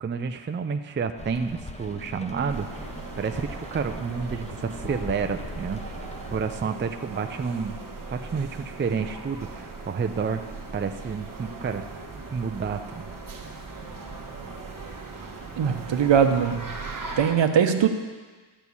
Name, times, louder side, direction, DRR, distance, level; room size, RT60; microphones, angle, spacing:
voice 1, 0.0-2.7 3.2-6.0 6.3-7.8 8.1-10.4 10.7-11.9 12.3-13.1, right 5 dB, 25° right, 7 dB, 0.4 m, -30 dB
Rain, 1.2-6.5, left 1 dB, 15° left, 0.6 m, -40 dB
sound 1, 2.5-17.4, right 3 dB, 45° right, 1.2 m, -39 dB
voice 2, 15.6-16.7 17.2-17.9, right 7 dB, 70° right, 7 dB, 0.9 m, -21 dB
12.5 x 4.5 x 8.3 m, 1.4 s
wide cardioid pair, 135°, 47 cm